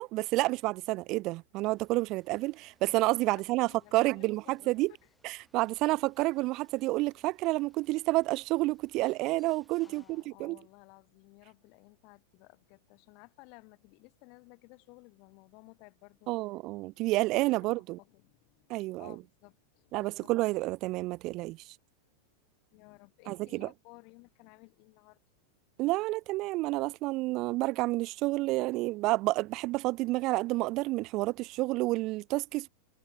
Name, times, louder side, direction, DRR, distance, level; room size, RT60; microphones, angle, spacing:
voice 1, 0.0-4.9 5.2-10.6 16.3-18.0 18.7-19.2 19.9-21.6 23.3-23.7 25.8-32.7, right 20 dB, 50° right, 0.5 m, -30 dB
sound 1, 1.7-10.3, left 1 dB, ahead, 7.4 m, -69 dB
voice 2, 3.6-4.8 9.8-16.3 17.3-20.3 22.7-25.2, left 33 dB, 55° left, 3.9 m, -56 dB
hypercardioid pair, 115°, 0 cm